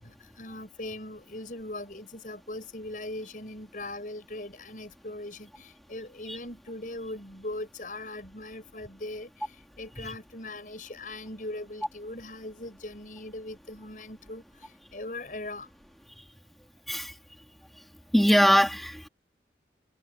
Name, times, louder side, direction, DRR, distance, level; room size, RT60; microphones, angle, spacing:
voice 1, 0.0-15.7, left 2 dB, 45° left, 6.9 m, -40 dB
voice 2, 18.1-19.1, equal, ahead, 3.5 m, -21 dB
head